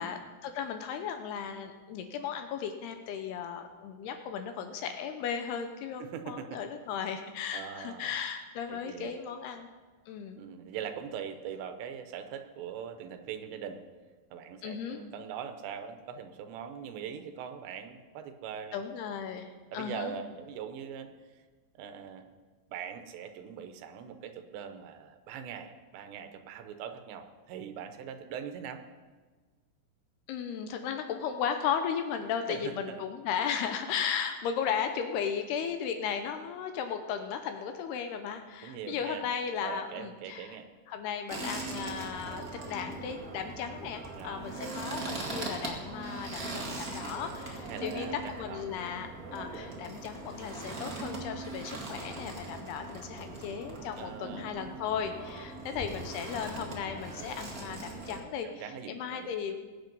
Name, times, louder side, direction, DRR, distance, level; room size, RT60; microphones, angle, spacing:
voice 1, 0.0-9.7 10.1-10.4 14.6-15.0 18.7-20.1 30.3-40.6 40.9-59.6, left 7 dB, 75° left, 7 dB, 2.6 m, -36 dB
voice 2, 6.0-6.6 7.5-8.1 8.7-9.1 10.3-13.8 14.3-18.8 19.7-21.4 21.8-22.3 22.7-28.8 32.5-33.0 38.6-39.3 39.6-40.7 43.6-43.7 44.2-44.4 47.7-48.6 54.0-54.5 57.2-57.3 58.4-59.3, right 8 dB, 80° right, 8 dB, 3.1 m, -42 dB
sound 1, 41.3-58.2, right 2 dB, 50° right, 0.9 m, -40 dB
21.0 x 8.6 x 5.4 m, 1.4 s
omnidirectional pair, 5.1 m